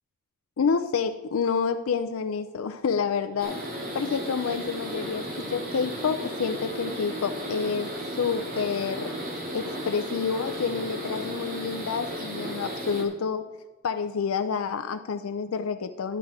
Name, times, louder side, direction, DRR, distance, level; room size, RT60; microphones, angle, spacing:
voice 1, 0.6-3.7 3.9-7.9 8.2-9.2 9.5-13.4 13.8-16.2, left 6 dB, 85° left, 9 dB, 0.5 m, -28 dB
sound 1, 3.4-13.0, equal, 45° right, 2.3 m, -34 dB
11.5 x 8.7 x 4.8 m, 1.2 s
head